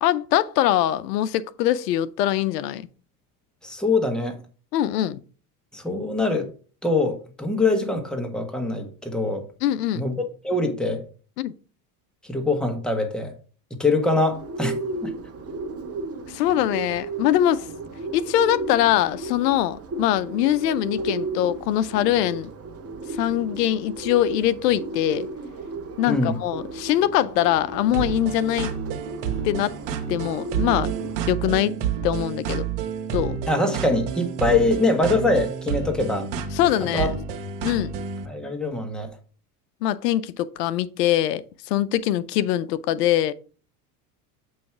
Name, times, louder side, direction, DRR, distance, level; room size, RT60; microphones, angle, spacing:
voice 1, 0.0-2.9 4.7-5.2 9.6-10.1 11.4-11.5 16.3-17.7 18.1-22.5 23.1-25.3 26.0-28.7 29.4-29.7 30.1-30.9 31.3-31.7 32.0-32.7 33.1-33.4 36.5-37.1 37.6-37.9 39.8-43.3, left 12 dB, 85° left, 0.6 m, -23 dB
voice 2, 3.6-4.4 5.7-6.5 6.8-9.5 10.0-11.0 12.3-13.3 13.8-14.7 15.0-15.1 26.1-26.4 33.5-36.3 36.9-37.1 38.3-39.1, left 2 dB, ahead, 1.5 m, -23 dB
Bird, 14.3-31.3, right 3 dB, 30° right, 1.2 m, -34 dB
sound 1, 27.9-38.3, right 7 dB, 70° right, 1.3 m, -29 dB
7.7 x 3.2 x 5.8 m
hypercardioid pair, 85°, 47 cm